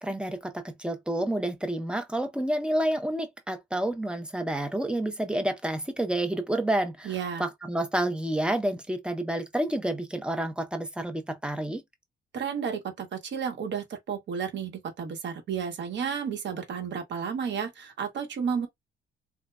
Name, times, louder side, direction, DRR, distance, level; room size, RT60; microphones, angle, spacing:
voice 1, 0.0-11.8, right 1 dB, 5° right, 0.6 m, -29 dB
voice 2, 7.0-7.5 12.3-18.7, right 7 dB, 65° right, 1.1 m, -32 dB
3.1 x 2.3 x 2.2 m
cardioid pair, 90°, 20 cm